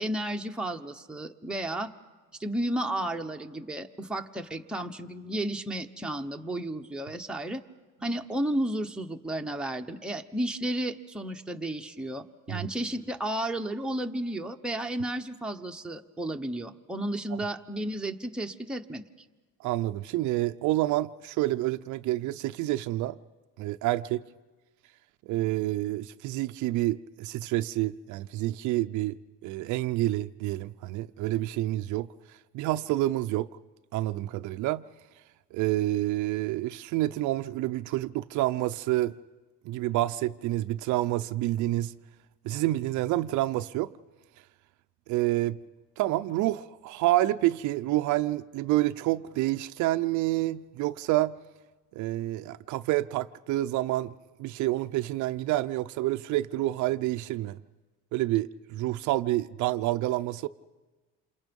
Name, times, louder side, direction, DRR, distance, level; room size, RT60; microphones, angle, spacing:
voice 1, 0.0-1.9 2.4-7.6 8.0-19.0, right 1 dB, 5° right, 1.0 m, -33 dB
voice 2, 19.6-23.2 23.6-24.2 25.3-29.2 29.4-32.1 32.5-33.5 33.9-34.8 35.5-39.1 39.6-41.9 42.4-43.9 45.1-45.6 46.0-51.4 51.9-57.6 58.1-60.5, right 16 dB, 60° right, 0.7 m, -28 dB
28.0 x 27.5 x 5.4 m
cardioid pair, 130°, 33 cm